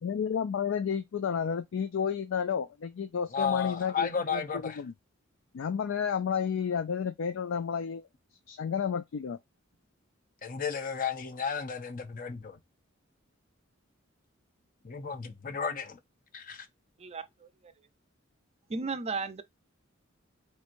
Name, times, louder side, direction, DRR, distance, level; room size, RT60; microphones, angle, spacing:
voice 1, 0.0-4.9 5.5-8.1 8.5-9.4, left 7 dB, 70° left, 0.4 m, -31 dB
voice 2, 3.3-4.8 10.4-12.6 14.8-16.0 16.3-16.7, left 6 dB, 45° left, 0.7 m, -33 dB
voice 3, 17.0-17.7 18.7-19.4, right 4 dB, 30° right, 0.5 m, -35 dB
4.4 x 3.1 x 2.5 m
head